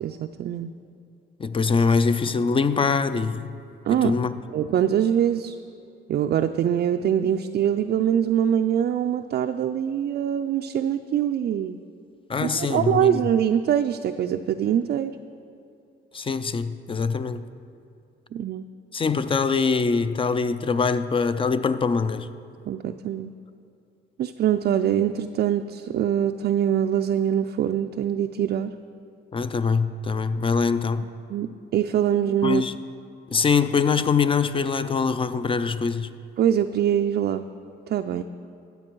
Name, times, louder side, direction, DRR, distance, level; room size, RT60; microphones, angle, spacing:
voice 1, 0.0-0.7 3.9-4.1 4.5-5.6 6.1-11.8 12.4-15.2 18.3-18.6 22.7-23.3 24.2-28.7 31.3-32.6 36.4-37.5 37.9-38.2, right 9 dB, 55° right, 0.4 m, -23 dB
voice 2, 1.4-3.5 4.0-4.3 12.3-13.2 16.1-17.4 18.9-22.3 29.3-31.1 32.4-32.8 33.3-36.1, left 5 dB, 25° left, 0.5 m, -23 dB
13.0 x 8.2 x 4.6 m
cardioid pair, 90°, 20 cm